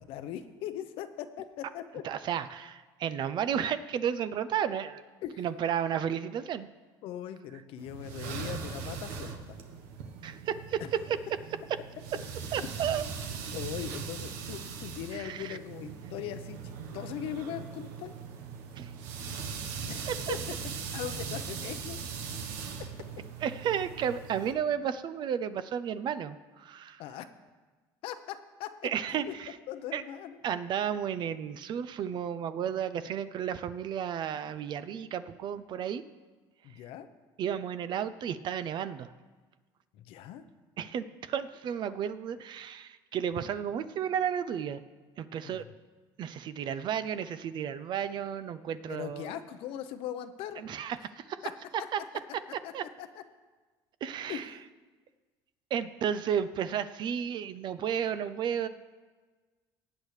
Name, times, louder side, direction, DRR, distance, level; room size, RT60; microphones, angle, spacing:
voice 1, 0.0-2.0 5.2-5.4 7.0-9.6 10.8-10.9 13.5-18.1 19.9-20.4 20.9-22.0 27.0-27.3 28.0-28.7 29.1-29.3 29.7-30.4 36.6-37.1 39.9-40.4 45.4-45.7 48.9-50.6 51.4-51.5 52.6-52.7 53.0-53.2 54.3-54.6, left 11 dB, 70° left, 10 dB, 0.8 m, -40 dB
voice 2, 2.0-5.0 5.4-6.7 10.2-10.8 11.1-11.2 12.5-13.0 15.1-15.6 18.7-18.9 20.1-20.3 23.4-27.0 28.8-29.6 29.9-30.0 30.4-36.0 37.4-39.1 40.8-44.8 45.2-45.6 46.2-49.3 50.6-51.5 51.9-52.0 52.5-52.8 54.0-54.5 55.7-58.7, right 8 dB, 50° right, 12 dB, 0.6 m, -33 dB
sound 1, 7.8-24.5, right 6 dB, 85° right, 1.2 m, -40 dB
18.5 x 8.6 x 3.3 m, 1.3 s
supercardioid pair, 100°, 10 cm